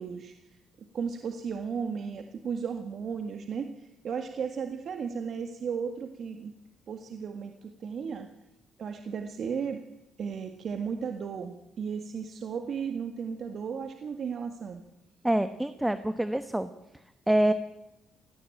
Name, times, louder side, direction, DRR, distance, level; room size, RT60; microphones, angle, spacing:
voice 1, 0.0-6.5 6.9-8.3 8.8-9.8 10.2-14.8, right 6 dB, 60° right, 6 dB, 1.7 m, -35 dB
voice 2, 15.2-16.7 17.3-17.5, right 1 dB, 10° right, 11 dB, 1.1 m, -26 dB
18.0 x 16.5 x 8.8 m, 0.90 s
cardioid pair, 90°, 0 cm